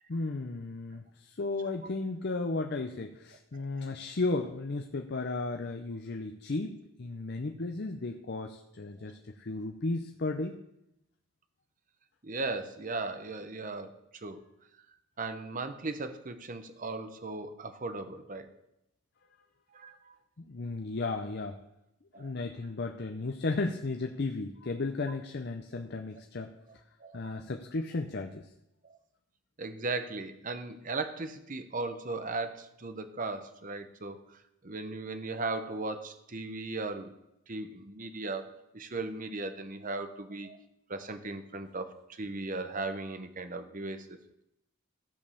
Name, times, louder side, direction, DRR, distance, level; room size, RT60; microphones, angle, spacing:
voice 1, 0.1-10.6 20.4-21.6 22.2-26.5 27.1-28.5, left 3 dB, 50° left, 4 dB, 0.6 m, -34 dB
voice 2, 12.2-14.4 15.2-18.5 19.7-20.2 22.1-22.3 25.7-25.8 27.0-27.3 28.9-29.0 29.6-34.2 34.6-37.1 37.5-40.6 40.9-44.2, right 3 dB, 40° right, 9 dB, 0.9 m, -37 dB
14.5 x 5.3 x 6.9 m, 0.85 s
head